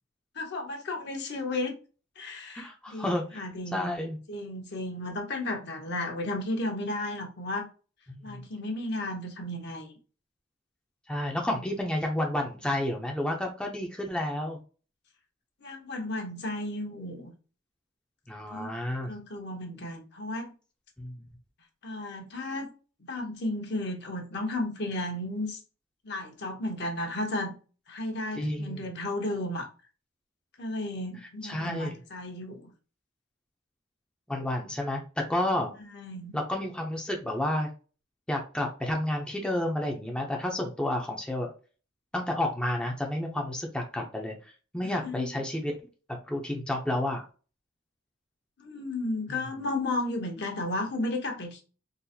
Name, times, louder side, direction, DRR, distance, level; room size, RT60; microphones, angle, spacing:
voice 1, 0.3-1.8 2.2-4.0 4.3-7.7 8.2-9.9 15.6-17.3 18.5-18.7 19.1-20.5 21.8-22.7 23.0-25.6 26.0-27.5 27.9-29.7 30.6-32.7 35.8-36.4 44.8-45.3 48.6-51.6, left 2 dB, 60° left, 0.9 m, -34 dB
voice 2, 2.5-3.5 3.7-4.2 8.1-8.4 11.1-14.6 18.3-19.1 21.0-21.2 28.4-28.8 31.4-31.9 34.3-35.7 36.3-37.7 38.3-41.5 42.1-44.4 44.7-45.7 46.1-47.3 49.3-49.4, left 1 dB, 5° left, 0.5 m, -30 dB
3.8 x 2.5 x 2.7 m
head